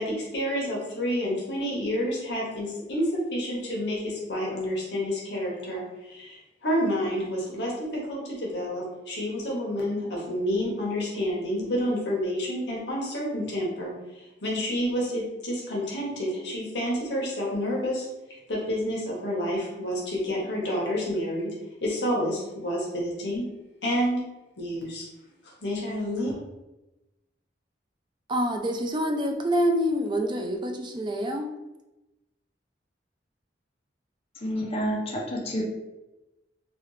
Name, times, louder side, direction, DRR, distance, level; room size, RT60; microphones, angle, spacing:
voice 1, 0.0-18.1 18.5-21.5 21.8-23.5 23.8-24.2 24.6-25.1 25.4-26.3, equal, 70° left, -4 dB, 1.0 m, -29 dB
voice 2, 28.3-31.5, equal, 25° right, 4 dB, 0.3 m, -26 dB
voice 3, 34.4-35.6, equal, 35° left, -1 dB, 0.5 m, -29 dB
3.2 x 2.3 x 3.1 m, 1.0 s
head